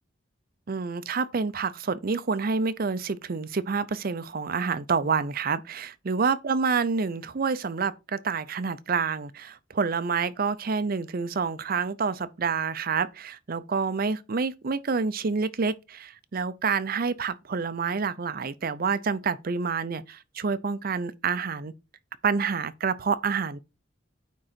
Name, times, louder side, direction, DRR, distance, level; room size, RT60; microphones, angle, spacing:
voice 1, 0.7-21.7 22.2-23.6, right 5 dB, 50° right, 0.6 m, -28 dB
9.2 x 3.8 x 4.4 m
head